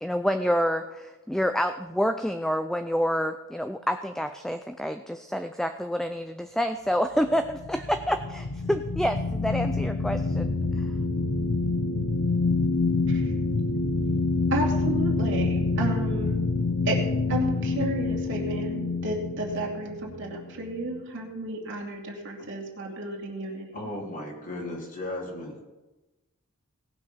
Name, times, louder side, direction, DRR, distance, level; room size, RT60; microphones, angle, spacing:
voice 1, 0.0-10.9, equal, ahead, 8 dB, 0.3 m, -28 dB
sound 1, 7.3-21.0, left 3 dB, 75° left, 0.9 m, -27 dB
voice 2, 14.5-16.4 16.8-17.0 17.3-23.7, right 2 dB, 55° right, -1 dB, 2.6 m, -32 dB
voice 3, 23.7-25.6, left 1 dB, 35° left, -1 dB, 2.8 m, -35 dB
18.0 x 6.2 x 5.7 m, 1.1 s
head